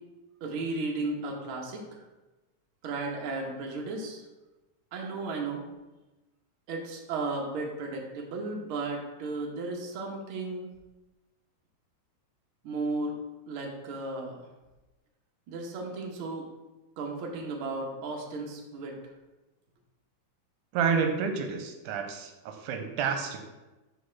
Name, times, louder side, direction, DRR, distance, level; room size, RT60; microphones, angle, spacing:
voice 1, 0.4-1.8 2.8-4.2 4.9-5.6 6.7-10.7 12.6-13.2 13.5-14.4 15.5-16.5 17.0-19.0, right 3 dB, 60° right, 0 dB, 1.4 m, -34 dB
voice 2, 20.7-23.4, right 6 dB, 90° right, 5 dB, 2.1 m, -29 dB
5.3 x 4.2 x 5.9 m, 1.1 s
omnidirectional pair, 3.6 m